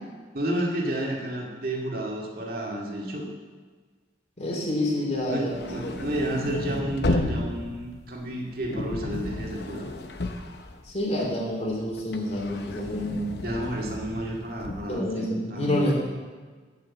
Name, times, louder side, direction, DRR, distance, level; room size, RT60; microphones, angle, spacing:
voice 1, 0.3-3.3 5.3-9.9 13.4-15.9, right 1 dB, 55° right, -2 dB, 2.1 m, -31 dB
voice 2, 4.4-6.7 10.8-13.3 14.9-15.9, left 1 dB, 35° left, -2 dB, 2.9 m, -29 dB
sound 1, 5.2-11.3 11.7-15.0, left 2 dB, 65° left, 0.9 m, -33 dB
9.5 x 8.1 x 7.3 m, 1.4 s
head